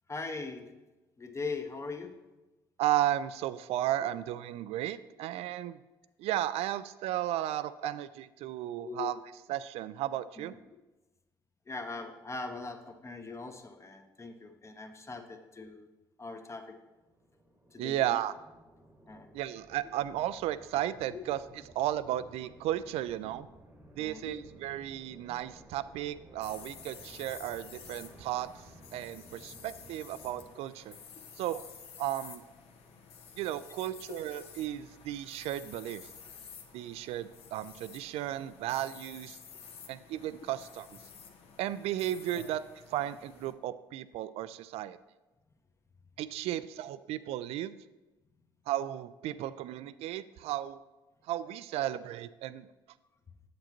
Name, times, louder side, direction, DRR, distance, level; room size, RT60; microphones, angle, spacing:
voice 1, 0.1-0.7 1.2-2.1 4.0-4.1 7.8-7.9 8.8-9.1 10.4-10.5 11.7-15.9 16.2-16.6 17.7-18.0 19.1-19.3 21.1-21.2 24.0-24.4 42.3-42.4, left 4 dB, 25° left, 7 dB, 0.9 m, -40 dB
voice 2, 2.8-5.8 6.2-9.2 9.5-10.5 17.8-18.3 19.3-21.4 21.7-23.5 24.0-28.5 28.9-31.0 31.4-31.6 32.0-32.4 33.4-36.1 36.7-39.4 39.9-40.9 41.6-42.6 42.9-45.0 46.2-47.7 48.7-50.8 51.3-52.7, right 13 dB, 65° right, 15 dB, 0.4 m, -34 dB
sound 1, 16.9-30.5, right 1 dB, 15° right, 1.1 m, -56 dB
sound 2, 26.4-43.5, left 6 dB, 60° left, 0.8 m, -51 dB
7.8 x 7.7 x 3.0 m, 1.1 s
hypercardioid pair, 55°, 11 cm